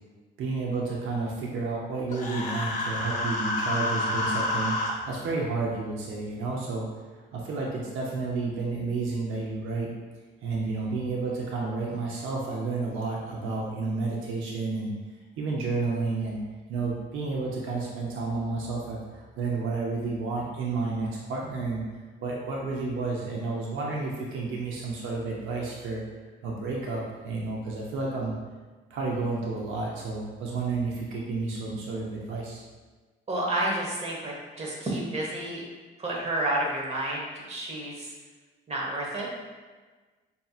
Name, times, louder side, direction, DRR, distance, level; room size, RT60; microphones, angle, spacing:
voice 1, 0.4-4.7 5.1-6.9 7.3-9.9 10.4-14.9 15.4-16.4 16.7-21.8 22.2-26.0 26.4-28.3 28.9-32.6, right 3 dB, 85° right, -3 dB, 0.7 m, -31 dB
Human voice, 2.1-4.9, left 2 dB, 40° left, 0.9 m, -29 dB
voice 2, 33.3-35.6 36.0-38.1 38.7-39.3, right 1 dB, 30° right, -3 dB, 1.1 m, -30 dB
5.3 x 2.8 x 2.4 m, 1.3 s
cardioid pair, 90°, 20 cm